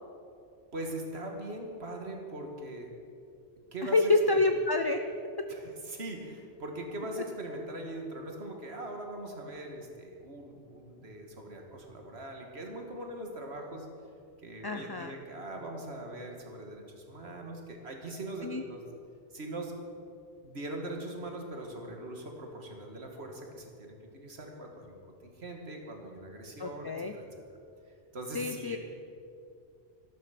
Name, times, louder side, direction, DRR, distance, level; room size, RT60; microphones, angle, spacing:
voice 1, 0.7-2.9 3.7-4.0 4.3-4.5 5.5-13.9 14.4-18.8 19.3-19.7 20.4-27.2 28.1-28.8, right 1 dB, 70° right, 2 dB, 2.1 m, -41 dB
voice 2, 3.8-5.0 14.6-15.1 18.4-18.6 26.6-27.1 28.3-28.8, left 3 dB, 35° left, 7 dB, 0.4 m, -27 dB
13.5 x 12.0 x 5.9 m, 2.5 s
omnidirectional pair, 1.1 m